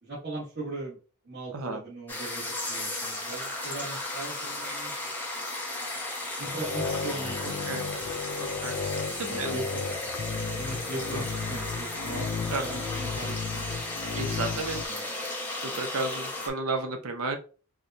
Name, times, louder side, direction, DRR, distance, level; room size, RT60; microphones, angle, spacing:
voice 1, 0.0-1.0 1.2-5.1 6.4-7.8 8.9-9.8 10.6-13.8 14.0-14.2 14.5-14.6 14.9-15.1, right 2 dB, 50° right, -9 dB, 1.3 m, -39 dB
sound 1, 2.1-16.5, left 2 dB, 10° left, 0.7 m, -35 dB
sound 2, 6.4-14.9, left 5 dB, 55° left, 0.3 m, -34 dB
voice 2, 7.4-7.9 8.4-8.8 9.2-9.6 11.1-11.2 12.5-12.8 14.2-14.8 15.6-17.4, right 3 dB, 80° right, 5 dB, 0.7 m, -33 dB
4.5 x 2.2 x 2.7 m, 0.37 s
head